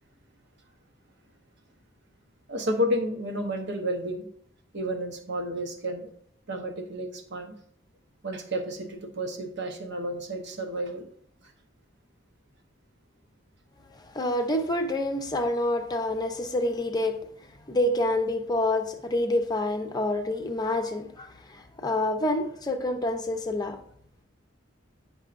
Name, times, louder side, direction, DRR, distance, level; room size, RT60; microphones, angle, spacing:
voice 1, 2.5-4.3 4.7-6.1 6.5-7.5 8.2-11.1 11.4-11.5, equal, 65° right, 0.9 m, -31 dB
voice 2, 14.0-17.2 17.7-23.8, left 1 dB, 20° left, 0.6 m, -27 dB
9.6 x 5.4 x 2.5 m
head